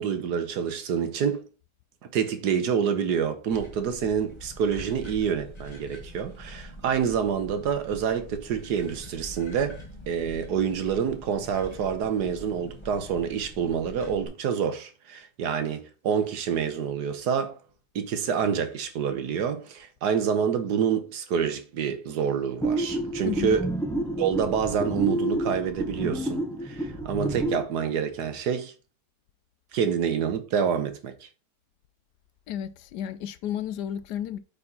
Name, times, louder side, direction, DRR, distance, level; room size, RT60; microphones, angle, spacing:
voice 1, 0.0-1.4 2.0-17.6 17.9-23.7 24.2-28.7 29.7-31.1, right 7 dB, 75° right, 1.5 m, -27 dB
sound 1, 3.5-14.3, equal, 20° left, 0.9 m, -44 dB
sound 2, 22.6-27.7, right 1 dB, 5° left, 0.5 m, -29 dB
voice 2, 23.2-23.6 32.5-34.4, left 10 dB, 75° left, 1.2 m, -32 dB
8.5 x 4.3 x 4.3 m
omnidirectional pair, 1.8 m